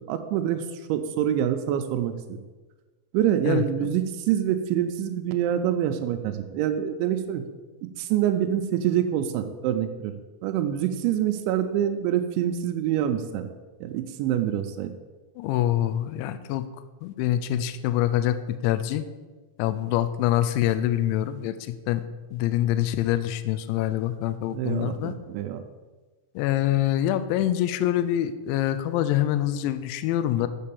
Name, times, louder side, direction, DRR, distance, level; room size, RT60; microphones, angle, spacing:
voice 1, 0.0-2.4 3.1-7.4 7.8-10.1 10.4-13.5 13.8-14.9 24.5-25.6, right 10 dB, 85° right, 5 dB, 2.6 m, -26 dB
voice 2, 3.4-3.9 15.4-16.7 17.0-19.0 19.6-22.0 22.3-25.1 26.4-30.5, left 12 dB, 90° left, 11 dB, 2.6 m, -25 dB
7.4 x 6.6 x 7.0 m, 1.3 s
omnidirectional pair, 5.9 m